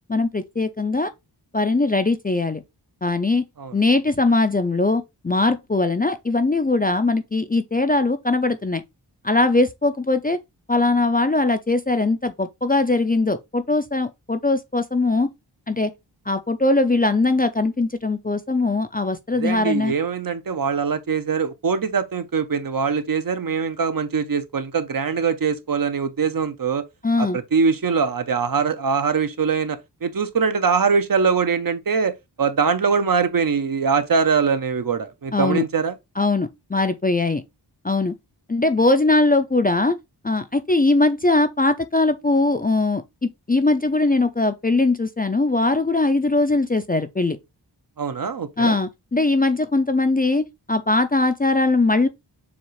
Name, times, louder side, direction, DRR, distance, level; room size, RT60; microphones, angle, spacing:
voice 1, 0.1-1.1 1.5-2.6 3.0-3.4 3.7-8.8 9.2-10.4 10.7-15.3 15.7-15.9 16.3-19.9 27.0-27.4 35.3-35.6 36.2-37.4 37.8-38.1 38.5-40.0 40.2-43.0 43.5-47.4 48.6-52.1, left 2 dB, 20° left, 0.4 m, -20 dB
voice 2, 19.4-26.8 27.2-35.9 48.0-48.8, right 5 dB, 50° right, 0.6 m, -22 dB
7.1 x 2.4 x 3.1 m
wide cardioid pair, 70°, 43 cm